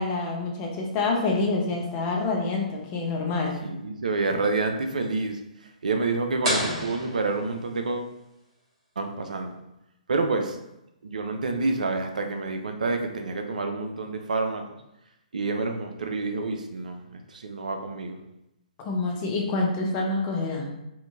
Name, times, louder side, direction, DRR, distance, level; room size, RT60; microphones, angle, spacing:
voice 1, 0.0-3.6 18.8-20.7, left 3 dB, 30° left, 0 dB, 0.5 m, -27 dB
voice 2, 3.6-8.1 9.0-9.6 10.1-10.6 11.0-14.6 15.3-18.2, right 3 dB, 70° right, 5 dB, 0.4 m, -28 dB
sound 1, 6.4-8.1, equal, 45° right, 1.3 m, -30 dB
2.8 x 2.5 x 2.3 m, 0.87 s
figure-of-eight pair, 125°, 4 cm